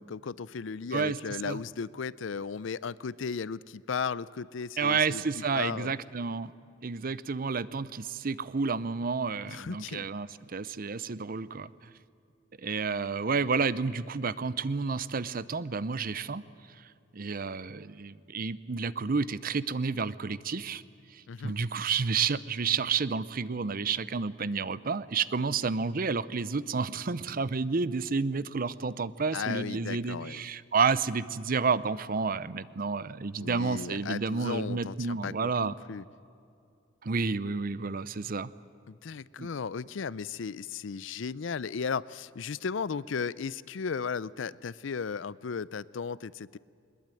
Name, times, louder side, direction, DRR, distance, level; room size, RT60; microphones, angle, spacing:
voice 1, 0.0-5.9 9.5-10.1 21.3-21.6 29.3-30.4 33.4-36.0 38.9-46.6, left 5 dB, 70° left, 20 dB, 0.5 m, -35 dB
voice 2, 4.8-6.5 6.8-11.7 12.6-16.4 17.1-20.8 21.1-35.7 37.0-38.5 39.4-39.5, right 5 dB, 45° right, 17 dB, 0.6 m, -30 dB
21.0 x 21.0 x 9.1 m, 2.5 s
head